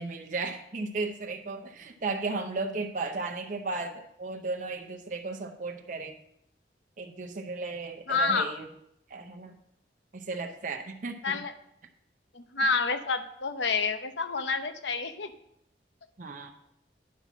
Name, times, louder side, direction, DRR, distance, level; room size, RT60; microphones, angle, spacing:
voice 1, 0.0-6.1 7.0-8.7 9.1-9.6 10.1-11.4 12.6-12.7 16.2-16.5, right 3 dB, 45° right, 4 dB, 0.7 m, -35 dB
voice 2, 8.1-8.5 11.2-11.5 12.3-15.3, left 4 dB, 85° left, 9 dB, 0.8 m, -28 dB
9.4 x 5.8 x 6.0 m, 0.75 s
head